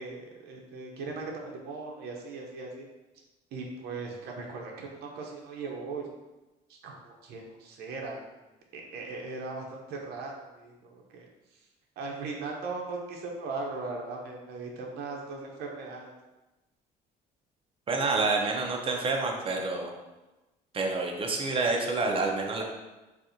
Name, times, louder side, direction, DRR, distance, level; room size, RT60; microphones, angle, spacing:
voice 1, 0.0-2.9 3.5-6.1 6.7-8.2 8.7-11.3 12.0-16.1, right 3 dB, 75° right, 0 dB, 0.6 m, -38 dB
voice 2, 17.9-19.9 20.7-22.6, right 3 dB, 35° right, 1 dB, 0.6 m, -28 dB
4.1 x 2.4 x 2.6 m, 1.1 s
cardioid pair, 110°, 17 cm